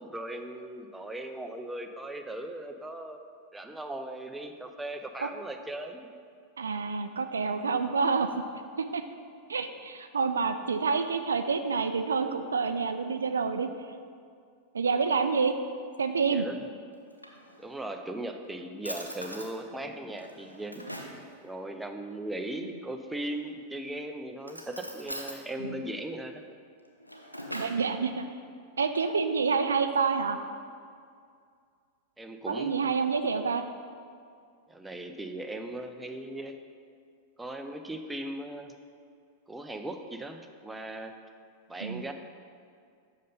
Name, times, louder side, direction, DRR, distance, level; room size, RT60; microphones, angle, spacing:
voice 1, 0.0-3.2 3.5-6.1 16.3-16.7 17.6-20.9 21.4-26.4 32.2-32.9 34.7-36.6 37.4-38.7 39.5-41.1 41.7-42.1, right 1 dB, 5° right, 5 dB, 0.6 m, -38 dB
voice 2, 6.6-8.3 8.8-9.0 9.5-13.7 14.7-15.5 16.0-16.5 27.5-28.3 28.8-30.4 32.5-33.6 41.8-42.0, right 5 dB, 70° right, 8 dB, 0.3 m, -28 dB
Drawer open or close, 16.9-17.9 18.4-18.5 18.8-19.5 20.1-21.2 23.1-23.7 24.4-25.4 26.8-27.9, equal, 90° left, 0.7 m, -42 dB
6.7 x 5.3 x 5.3 m, 2.2 s
figure-of-eight pair, 90°, 0 cm